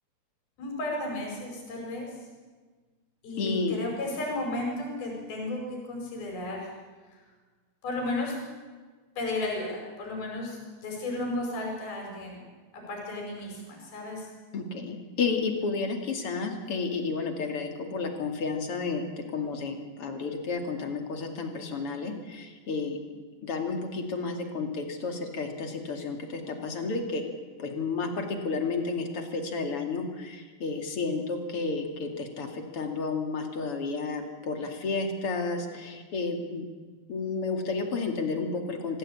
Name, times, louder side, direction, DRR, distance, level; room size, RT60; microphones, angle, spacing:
voice 1, 0.6-2.2 3.2-6.7 7.8-8.4 9.2-12.4 12.9-14.3, left 2 dB, 75° left, 0 dB, 6.9 m, -33 dB
voice 2, 3.4-3.7 14.5-23.0 23.4-27.2 27.6-36.7 37.1-39.0, left 4 dB, 40° left, 4 dB, 3.0 m, -31 dB
26.0 x 16.0 x 8.7 m, 1.4 s
omnidirectional pair, 4.3 m